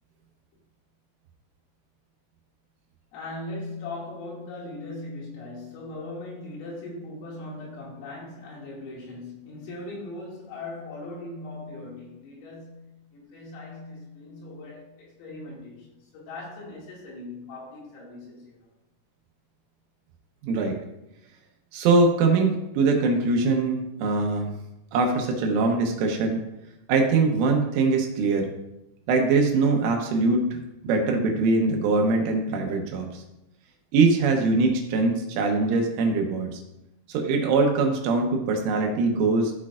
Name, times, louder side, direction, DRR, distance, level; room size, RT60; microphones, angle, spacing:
voice 1, 3.1-15.9 16.1-18.6, left 2 dB, 80° left, -4 dB, 4.9 m, -39 dB
voice 2, 20.4-20.8 21.7-24.5 24.9-26.4 26.9-28.5 29.1-30.6 30.8-33.2 33.9-36.6 37.1-39.5, right 3 dB, 75° right, 2 dB, 3.4 m, -22 dB
14.0 x 6.4 x 2.5 m, 0.88 s
omnidirectional pair, 6.0 m